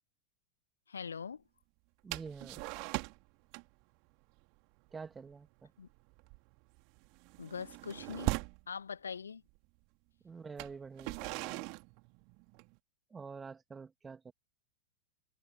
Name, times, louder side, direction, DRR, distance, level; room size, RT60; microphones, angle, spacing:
voice 1, 0.9-1.4 5.8-5.9 7.4-8.3 8.7-9.4, left 6 dB, 70° left, 1.5 m, -42 dB
voice 2, 2.0-2.8 4.9-5.7 10.2-11.7 13.1-14.3, right 5 dB, 15° right, 2.8 m, -47 dB
sound 1, 2.1-3.3 3.5-3.8 4.1-4.4 4.8-5.0 5.3-5.6 6.0-8.6 9.5-9.6 10.4-12.8, right 34 dB, 45° right, 3.6 m, -40 dB
figure-of-eight pair, 90°, 0 cm